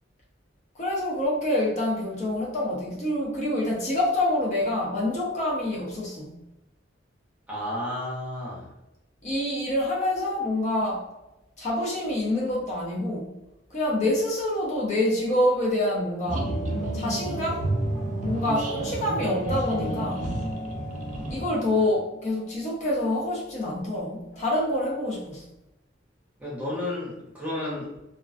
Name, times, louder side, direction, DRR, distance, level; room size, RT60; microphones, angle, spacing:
voice 1, 0.7-6.3 9.2-11.0 11.6-13.3 13.7-16.5 16.9-17.6 18.2-20.3 21.3-25.4, left 1 dB, 40° left, -5 dB, 0.6 m, -26 dB
voice 2, 7.5-8.7 26.4-27.9, left 1 dB, 10° right, -7 dB, 0.8 m, -32 dB
sound 1, 16.3-24.8, equal, 85° left, 1.1 m, -40 dB
sound 2, 16.3-21.4, right 1 dB, 40° right, 0.4 m, -30 dB
2.4 x 2.2 x 2.3 m, 0.93 s
head